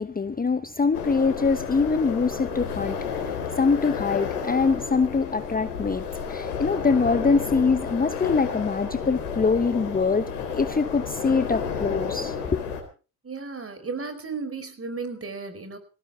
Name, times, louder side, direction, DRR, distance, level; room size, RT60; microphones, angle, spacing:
voice 1, 0.0-12.6, left 4 dB, 20° left, 1.0 m, -24 dB
sound 1, 0.9-12.8, left 6 dB, 90° left, 3.8 m, -31 dB
voice 2, 13.2-15.8, right 4 dB, 30° right, 5.0 m, -34 dB
20.5 x 16.5 x 3.7 m
hypercardioid pair, 55°, 44 cm